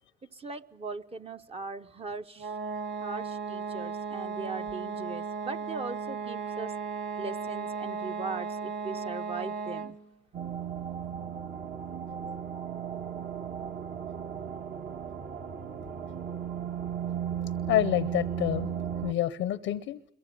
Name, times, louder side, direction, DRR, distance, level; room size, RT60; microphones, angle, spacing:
voice 1, 0.3-2.5 3.0-6.7 7.2-10.0, right 3 dB, 30° right, 8 dB, 0.8 m, -39 dB
sound 1, 2.4-10.1, right 5 dB, 75° right, 1.9 m, -35 dB
sound 2, 10.3-19.1, right 8 dB, 55° right, 1.5 m, -35 dB
voice 2, 17.7-18.7 19.0-20.0, left 13 dB, 90° left, 14 dB, 0.8 m, -28 dB
27.0 x 23.0 x 6.7 m, 0.76 s
cardioid pair, 90°, 20 cm